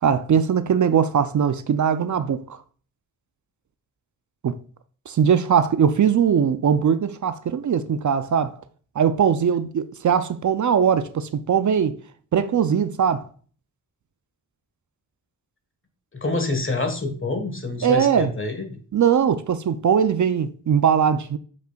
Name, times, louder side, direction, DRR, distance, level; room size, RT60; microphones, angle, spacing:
voice 1, 0.0-2.6 4.4-4.6 5.1-8.6 9.0-12.0 12.3-13.3 17.8-18.3 18.9-21.4, right 7 dB, 60° right, 0.5 m, -20 dB
voice 2, 16.1-18.8, left 3 dB, 35° left, 1.4 m, -27 dB
7.7 x 5.4 x 2.3 m
wide cardioid pair, 75°, 34 cm